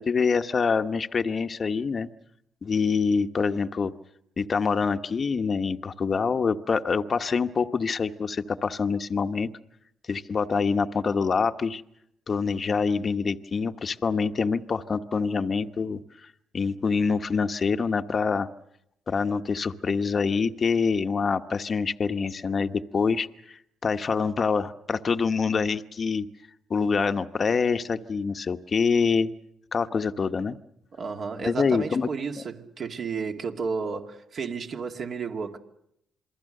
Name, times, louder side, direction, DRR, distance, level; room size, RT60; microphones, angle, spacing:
voice 1, 0.0-2.1 2.6-3.9 4.4-9.5 10.1-11.8 12.3-16.0 16.5-18.5 19.1-26.3 26.7-29.3 29.7-30.6 31.4-32.1, left 5 dB, 40° left, 1.1 m, -25 dB
voice 2, 30.9-35.6, right 5 dB, 55° right, 2.4 m, -32 dB
27.5 x 22.0 x 6.6 m
cardioid pair, 90°, 0 cm